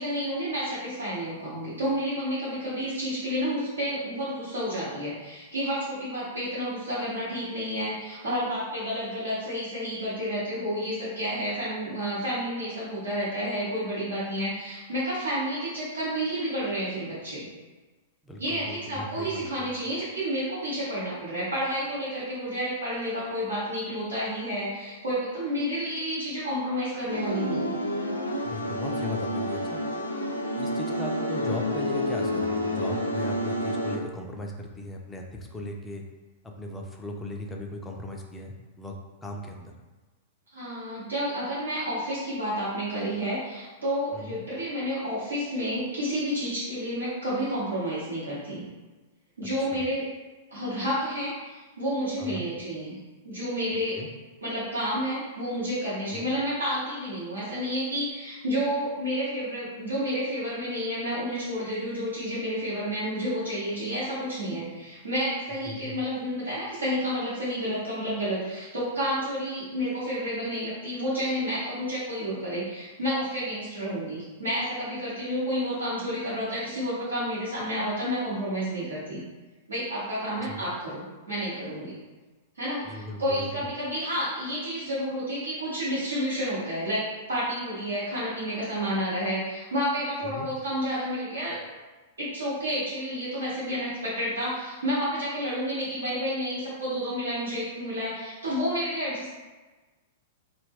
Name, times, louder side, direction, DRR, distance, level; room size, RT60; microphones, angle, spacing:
voice 1, 0.0-17.5 18.4-27.8 40.5-48.6 49.4-50.1 50.5-53.0 53.2-54.0 54.4-79.2 79.7-82.0 82.5-91.6 92.2-99.3, equal, 75° right, -10 dB, 0.8 m, -30 dB
voice 2, 18.2-19.7 28.4-29.8 30.6-36.0 36.4-39.0 39.2-39.7 44.1-44.4 49.6-49.8 52.2-52.4 53.9-54.1 56.1-56.3 65.7-66.0 80.4-80.6 82.8-83.6 90.2-90.5, left 1 dB, 10° left, 1 dB, 0.4 m, -38 dB
sound 1, 27.1-34.0, equal, 85° left, 0.3 m, -29 dB
2.2 x 2.1 x 3.4 m, 1.3 s
figure-of-eight pair, 100°, 0 cm